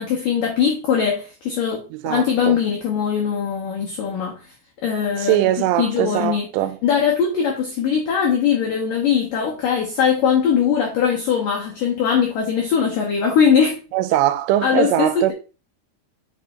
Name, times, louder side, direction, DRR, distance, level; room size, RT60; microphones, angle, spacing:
voice 1, 0.0-4.4 4.8-5.5 5.8-6.5 6.8-13.8 14.6-15.3, left 7 dB, 80° left, 1.9 m, -20 dB
voice 2, 1.9-2.6 5.2-6.8 13.9-15.3, right 14 dB, 90° right, 3.1 m, -21 dB
5.7 x 5.6 x 3.8 m
omnidirectional pair, 5.5 m